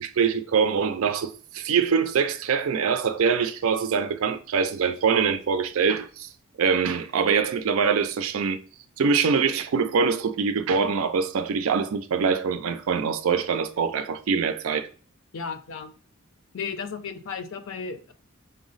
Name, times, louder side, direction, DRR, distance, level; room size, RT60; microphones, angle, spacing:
voice 1, 0.0-6.3 6.6-8.6 9.0-14.9, right 6 dB, 75° right, 0.4 m, -24 dB
voice 2, 15.3-15.9 16.5-18.1, left 5 dB, 65° left, 0.5 m, -34 dB
5.4 x 2.0 x 3.8 m
head